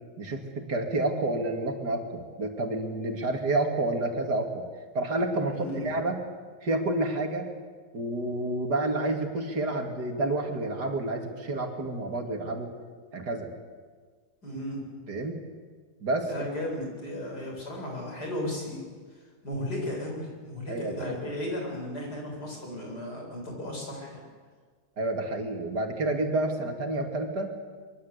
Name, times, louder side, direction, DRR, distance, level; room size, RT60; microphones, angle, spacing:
voice 1, 0.2-4.6 4.9-6.2 6.6-7.5 7.9-12.7 13.1-13.5 15.1-15.4 16.0-16.3 20.7-20.9 25.0-27.5, right 2 dB, 85° right, 4 dB, 3.4 m, -29 dB
voice 2, 5.5-6.0 14.4-14.9 16.3-18.8 19.1-24.2, left 1 dB, 80° left, 0 dB, 7.7 m, -35 dB
24.5 x 23.5 x 8.4 m, 1.5 s
omnidirectional pair, 1.7 m